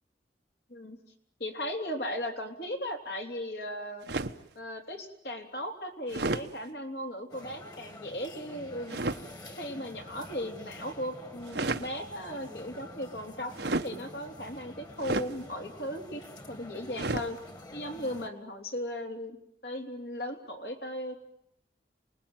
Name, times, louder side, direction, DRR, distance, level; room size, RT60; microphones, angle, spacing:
voice 1, 1.4-4.1 4.6-9.1 9.6-13.5 13.8-17.4 17.7-19.4 19.6-21.1, equal, 65° left, 3 dB, 3.6 m, -37 dB
sound 1, 4.1-4.5 6.1-6.5 8.9-9.2 11.4-11.9 13.5-13.9 15.0-15.3 17.0-17.3, right 2 dB, 75° right, 1.1 m, -31 dB
sound 2, 7.3-18.3, left 1 dB, 25° left, 2.2 m, -48 dB
28.5 x 20.5 x 9.2 m, 0.76 s
head